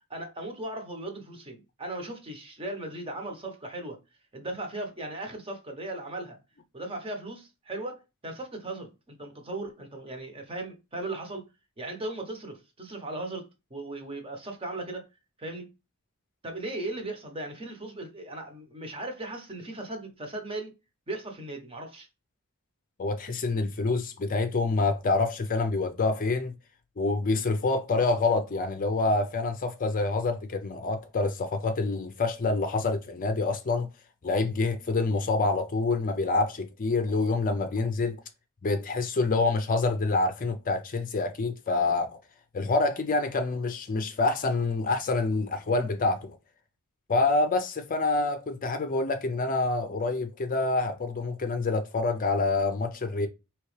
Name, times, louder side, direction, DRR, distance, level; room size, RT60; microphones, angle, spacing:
voice 1, 0.1-4.0 4.3-6.4 6.7-11.5 11.8-15.1 15.4-15.7 16.4-20.7 21.1-22.1, right 2 dB, 25° right, 1.0 m, -37 dB
voice 2, 23.0-26.5 27.0-33.9 34.2-38.2 38.6-42.2 42.5-46.4 47.1-53.3, left 3 dB, 40° left, 0.5 m, -27 dB
4.5 x 3.0 x 3.2 m
head